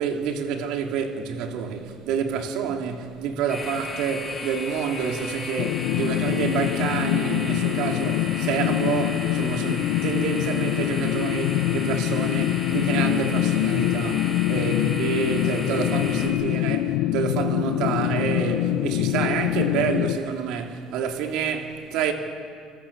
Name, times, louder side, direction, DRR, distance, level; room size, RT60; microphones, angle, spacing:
voice 1, 0.0-22.1, right 7 dB, 70° right, 3.2 m, -28 dB
sound 1, 3.5-16.3, left 1 dB, 10° left, 7.8 m, -35 dB
sound 2, 5.6-20.2, left 15 dB, 90° left, 0.7 m, -24 dB
29.5 x 24.0 x 7.4 m
cardioid pair, 145°, 0 cm